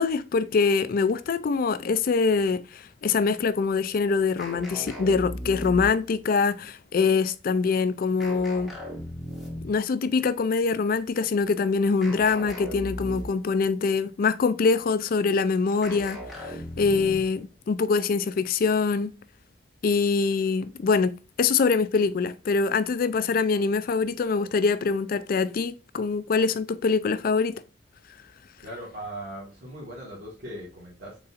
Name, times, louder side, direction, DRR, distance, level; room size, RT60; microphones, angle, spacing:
voice 1, 0.0-8.7 9.6-19.1 19.8-21.1 21.4-27.5, left 4 dB, 50° left, 0.3 m, -24 dB
sound 1, 4.4-6.2 8.2-9.9 12.0-13.5 15.8-17.4, equal, ahead, 1.2 m, -37 dB
voice 2, 28.6-31.3, right 1 dB, 55° right, 1.4 m, -39 dB
4.1 x 3.8 x 2.4 m
head